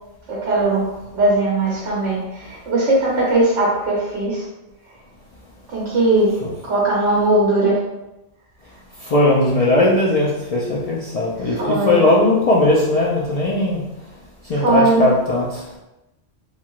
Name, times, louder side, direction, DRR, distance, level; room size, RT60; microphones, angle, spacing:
voice 1, 0.3-0.8 1.1-4.4 5.7-6.3 6.6-7.8 11.4-12.1 14.5-15.0, right 2 dB, 75° right, -6 dB, 1.1 m, -19 dB
voice 2, 9.0-13.8 14.5-15.6, left 2 dB, 75° left, -6 dB, 0.3 m, -18 dB
3.2 x 2.8 x 2.3 m, 0.95 s
omnidirectional pair, 1.2 m